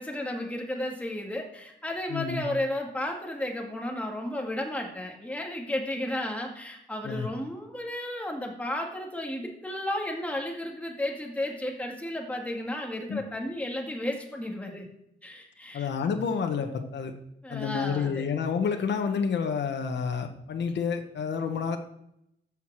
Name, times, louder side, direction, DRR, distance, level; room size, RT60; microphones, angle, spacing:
voice 1, 0.0-14.9 15.2-15.9 17.4-18.3, left 1 dB, 5° left, 0 dB, 1.8 m, -33 dB
voice 2, 2.1-2.5 7.0-7.3 13.1-13.2 15.7-17.1 17.5-21.8, left 6 dB, 70° left, 5 dB, 1.0 m, -29 dB
12.0 x 4.8 x 7.4 m, 0.80 s
wide cardioid pair, 130°, 19 cm